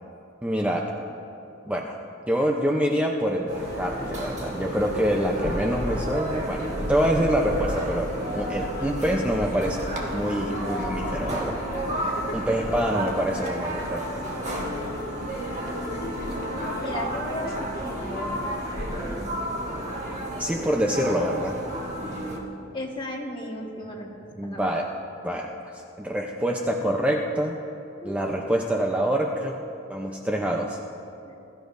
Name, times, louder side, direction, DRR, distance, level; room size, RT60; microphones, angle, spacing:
voice 1, 0.4-0.9 1.7-2.0 2.3-11.6 12.3-14.0 20.4-21.6 24.4-24.9 25.2-27.6 28.0-29.6 29.9-30.8, equal, 5° right, 0 dB, 0.6 m, -26 dB
sound 1, 3.5-19.3, left 1 dB, 50° left, 1.0 m, -37 dB
sound 2, 3.5-22.4, right 1 dB, 35° right, 1.7 m, -32 dB
voice 2, 15.6-16.3 16.8-18.6 19.0-19.5 22.7-24.7 28.0-28.4 31.2-31.3, left 1 dB, 25° left, -1 dB, 1.5 m, -36 dB
21.0 x 13.5 x 2.6 m, 2.7 s
head